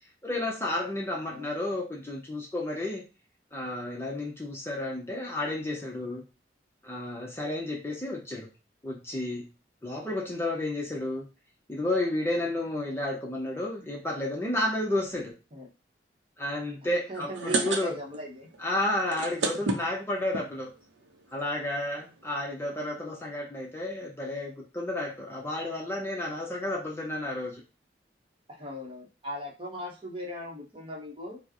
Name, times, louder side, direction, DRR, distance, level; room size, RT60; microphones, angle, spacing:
voice 1, 0.2-3.1 3.5-6.2 6.8-8.5 8.8-9.5 9.8-11.2 11.7-15.3 16.4-18.0 18.6-20.7 21.3-27.6, left 1 dB, 15° left, -2 dB, 0.6 m, -31 dB
voice 2, 17.1-18.5 28.5-31.4, equal, 30° right, 0 dB, 0.9 m, -39 dB
sound 1, 17.2-18.3 18.5-18.6 19.0-20.5 21.1-21.2 21.5-21.6 21.7-22.0, right 3 dB, 80° right, 0.6 m, -30 dB
4.4 x 2.1 x 2.9 m, 0.30 s
head